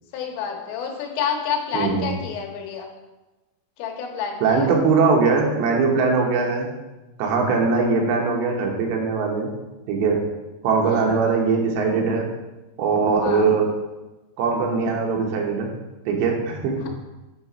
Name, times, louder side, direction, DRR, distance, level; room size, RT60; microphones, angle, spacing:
voice 1, 0.1-2.9 3.8-4.7 13.2-13.5, left 7 dB, 85° left, 2 dB, 3.2 m, -28 dB
voice 2, 1.7-2.2 4.4-6.7 7.2-9.5 9.9-10.2 10.6-12.3 12.8-13.7 14.4-15.7 16.1-16.9, right 4 dB, 80° right, 1 dB, 3.3 m, -21 dB
8.7 x 4.1 x 5.1 m, 1.1 s
omnidirectional pair, 5.0 m